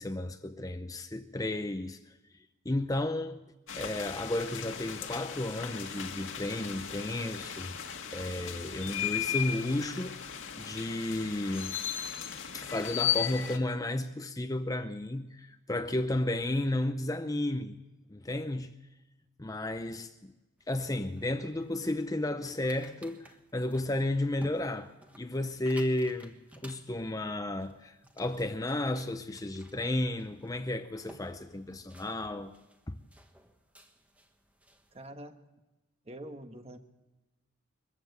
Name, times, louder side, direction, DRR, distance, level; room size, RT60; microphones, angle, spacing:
voice 1, 0.0-2.2 2.6-3.5 3.7-7.8 8.1-11.8 12.5-17.8 18.1-18.8 19.4-20.3 20.7-26.3 26.6-32.5 32.9-33.0, left 1 dB, 15° left, 0.6 m, -33 dB
sound 1, 3.7-13.6, left 9 dB, 75° left, 1.8 m, -36 dB
sound 2, 20.6-35.1, right 1 dB, 5° right, 1.3 m, -56 dB
voice 2, 34.9-35.3 36.0-36.8, right 1 dB, 30° right, 1.3 m, -45 dB
22.0 x 15.0 x 8.0 m
head